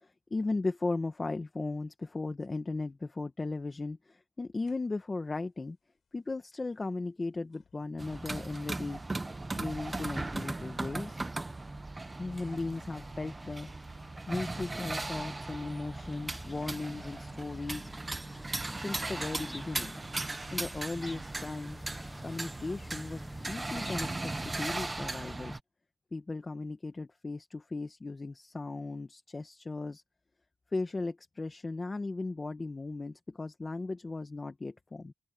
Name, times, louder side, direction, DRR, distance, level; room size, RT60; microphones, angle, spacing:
voice 1, 0.0-5.8 6.1-9.0 9.6-11.2 12.2-13.7 14.3-17.9 18.6-20.0 20.5-21.8 22.2-25.6 26.1-30.0 30.7-35.1, left 3 dB, 30° left, 1.2 m, -37 dB
sound 1, 4.6-5.3 6.6-6.7 7.5-22.5, left 7 dB, 75° left, 4.6 m, -62 dB
sound 2, 8.0-25.6, right 2 dB, 20° right, 0.8 m, -38 dB
sound 3, 15.3-25.1, left 1 dB, 10° left, 0.8 m, -50 dB
wide cardioid pair, 130°, 0 cm